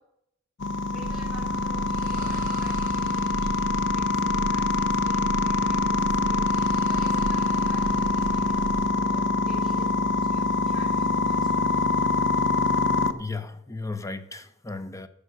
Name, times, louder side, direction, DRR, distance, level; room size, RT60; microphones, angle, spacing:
sound 1, 0.6-13.1, left 3 dB, 60° left, 0.7 m, -24 dB
voice 1, 0.9-11.7, right 1 dB, ahead, -4 dB, 4.6 m, -48 dB
sound 2, 1.0-8.9, right 4 dB, 40° right, 0.4 m, -36 dB
voice 2, 13.1-15.1, left 3 dB, 15° left, 11 dB, 0.7 m, -35 dB
15.0 x 5.1 x 7.7 m, 0.79 s
head